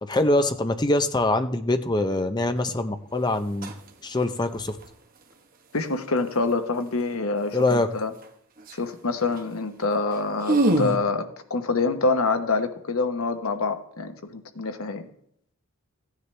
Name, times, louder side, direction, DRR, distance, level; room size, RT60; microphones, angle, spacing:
voice 1, 0.0-3.7 4.0-4.8 7.5-7.9, left 2 dB, 20° left, 8 dB, 0.6 m, -24 dB
sound 1, 2.6-2.8 3.4-3.9 4.2-4.9 8.2-8.3 8.6-8.9 9.2-9.4 9.8-9.9 10.1-11.0, right 1 dB, 40° right, 1.1 m, -25 dB
voice 2, 5.7-8.1 8.7-15.1, left 3 dB, 80° left, 7 dB, 1.1 m, -26 dB
15.0 x 9.7 x 3.3 m, 0.70 s
head